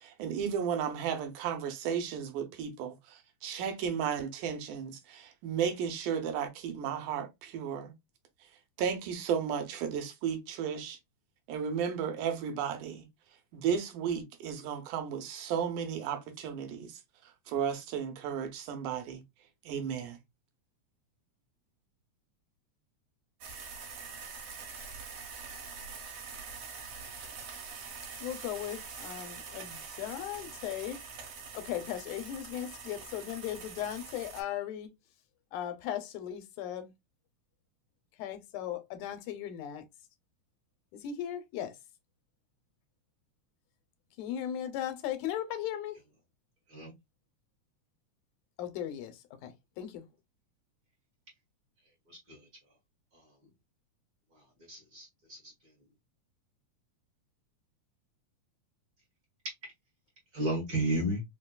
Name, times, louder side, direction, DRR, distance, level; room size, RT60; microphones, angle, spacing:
voice 1, 0.0-7.9 8.8-11.0 11.5-13.1 13.5-17.0 17.5-19.2 19.7-20.2, right 7 dB, 85° right, 2.2 m, -34 dB
sound 1, 23.4-34.4, right 5 dB, 65° right, 2.3 m, -44 dB
voice 2, 28.2-31.0 31.5-34.9 35.5-36.9 38.1-39.8 40.9-41.8 44.2-46.0 48.6-50.1, left 10 dB, 90° left, 2.2 m, -37 dB
voice 3, 52.1-52.5 54.7-55.5 60.3-61.2, right 1 dB, 50° right, 1.2 m, -33 dB
5.0 x 2.2 x 2.3 m
omnidirectional pair, 3.5 m